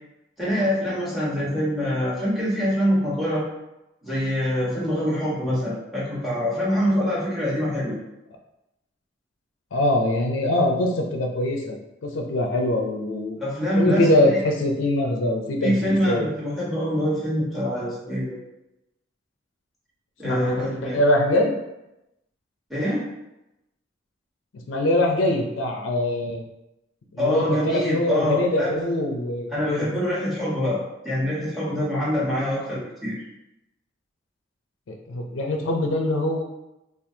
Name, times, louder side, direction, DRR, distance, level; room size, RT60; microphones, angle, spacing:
voice 1, 0.4-3.4 4.0-8.0 13.4-14.4 15.6-18.4 20.2-21.0 22.7-23.0 27.2-28.7 29.5-30.8 31.0-33.2, equal, ahead, -8 dB, 1.1 m, -25 dB
voice 2, 9.7-11.8 12.0-13.4 13.8-16.3 20.2-21.5 24.5-26.4 27.1-29.9 34.9-36.4, left 1 dB, 85° left, 2 dB, 0.5 m, -23 dB
4.2 x 2.4 x 2.7 m, 0.92 s
head